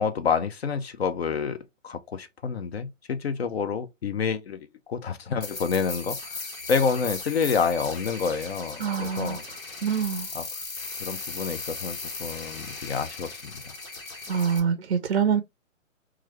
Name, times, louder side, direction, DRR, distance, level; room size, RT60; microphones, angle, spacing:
voice 1, 0.0-6.4 6.7-9.4 10.3-10.6 11.0-13.7, left 6 dB, 55° left, 0.5 m, -28 dB
sound 1, 5.4-14.6, left 3 dB, 90° left, 1.3 m, -37 dB
voice 2, 8.8-9.4 9.8-10.3 14.3-15.4, right 7 dB, 50° right, 0.4 m, -25 dB
3.0 x 2.4 x 3.1 m
hypercardioid pair, 145°, 39 cm